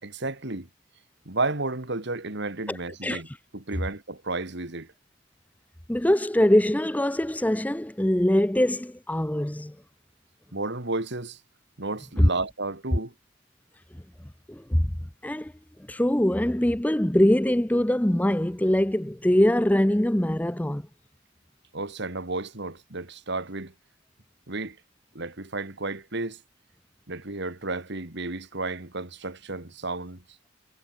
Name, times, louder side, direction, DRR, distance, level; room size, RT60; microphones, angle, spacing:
voice 1, 0.0-0.7 1.3-3.3 3.5-4.9 10.5-11.4 11.8-13.1 21.7-23.7 24.5-24.8 25.1-26.4 27.1-30.2, right 2 dB, 55° right, 2.3 m, -32 dB
voice 2, 2.7-3.2 5.9-9.8 12.2-12.3 14.5-14.9 15.2-15.5 15.9-20.9, left 1 dB, 5° left, 0.6 m, -23 dB
head